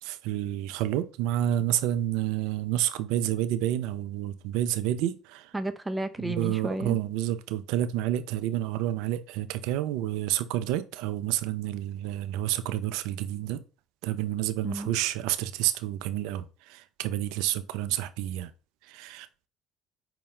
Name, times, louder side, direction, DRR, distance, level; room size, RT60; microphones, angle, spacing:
voice 1, 0.0-5.5 6.2-13.6 14.0-18.5 18.9-19.3, right 12 dB, 70° right, 0.4 m, -29 dB
voice 2, 5.5-7.0 14.6-15.0, right 1 dB, 10° right, 0.5 m, -32 dB
5.2 x 2.2 x 3.7 m
hypercardioid pair, 65°, 0 cm